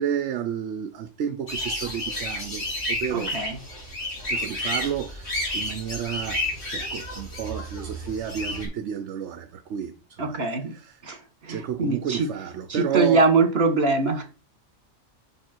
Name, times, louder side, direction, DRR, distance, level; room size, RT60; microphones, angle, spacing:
voice 1, 0.0-3.4 4.3-10.4 10.7-11.0 11.5-13.2, right 9 dB, 70° right, 1.0 m, -31 dB
sound 1, 1.5-8.7, left 1 dB, 80° left, 3.9 m, -31 dB
voice 2, 3.1-3.6 10.2-10.7 11.0-11.2 11.4-12.3 12.7-14.2, right 3 dB, 55° right, 1.8 m, -22 dB
7.6 x 5.4 x 4.4 m
omnidirectional pair, 1.3 m